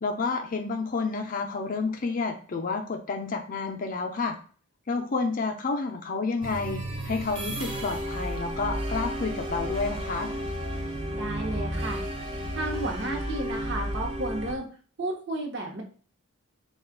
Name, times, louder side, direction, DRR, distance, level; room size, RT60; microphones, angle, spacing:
voice 1, 0.0-4.4 4.9-10.3, left 4 dB, 40° left, 4 dB, 0.5 m, -30 dB
sound 1, 6.4-14.6, equal, 25° right, 0.5 m, -32 dB
voice 2, 11.1-12.0 12.5-14.7 15.0-15.8, right 2 dB, 55° right, 1 dB, 0.8 m, -32 dB
3.7 x 2.3 x 3.6 m, 0.41 s
head